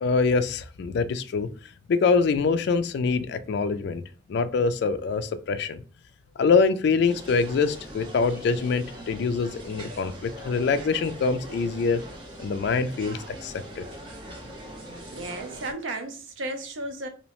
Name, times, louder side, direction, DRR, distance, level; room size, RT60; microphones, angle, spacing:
voice 1, 0.0-1.5 1.9-4.0 4.3-5.8 6.4-12.0 12.4-13.8, left 4 dB, 60° left, 0.3 m, -24 dB
sound 1, 7.1-15.7, right 1 dB, 25° right, 0.6 m, -42 dB
voice 2, 15.1-17.1, right 2 dB, 80° right, 0.6 m, -34 dB
2.7 x 2.1 x 2.9 m
head